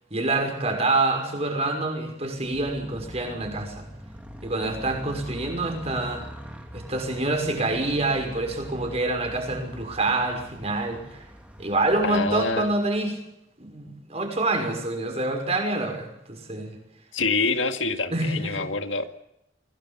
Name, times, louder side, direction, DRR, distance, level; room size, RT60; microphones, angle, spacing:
voice 1, 0.1-3.9 4.4-6.2 6.7-11.2 11.6-13.2 13.6-16.8 18.1-18.5, right 2 dB, 35° right, 4 dB, 6.0 m, -26 dB
Motorcycle, 2.4-13.0, equal, 5° right, 3.3 m, -43 dB
voice 2, 12.0-12.7 17.1-19.0, left 3 dB, 90° left, 7 dB, 2.2 m, -26 dB
26.0 x 18.5 x 7.3 m, 0.84 s
head